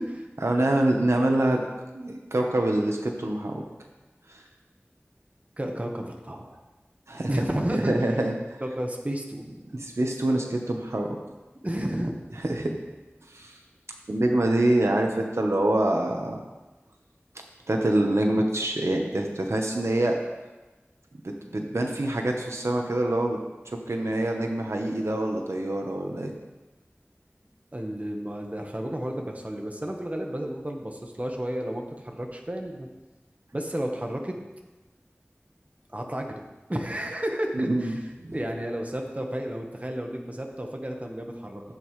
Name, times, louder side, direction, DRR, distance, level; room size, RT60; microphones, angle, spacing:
voice 1, 0.4-1.6 1.9-3.6 4.3-4.4 7.1-7.3 7.7-8.3 9.7-11.2 12.4-12.8 13.3-13.5 14.1-16.4 17.7-20.2 21.2-23.4 23.9-26.3 37.5-38.3, right 1 dB, 80° right, 2 dB, 1.1 m, -25 dB
voice 2, 5.6-6.6 7.3-7.9 8.6-9.6 11.6-12.2 27.7-32.9 33.5-34.4 35.9-36.4 36.7-38.0 38.3-41.6, right 1 dB, 30° right, 2 dB, 1.3 m, -32 dB
14.5 x 8.4 x 3.2 m, 1.1 s
wide cardioid pair, 45°, 5 cm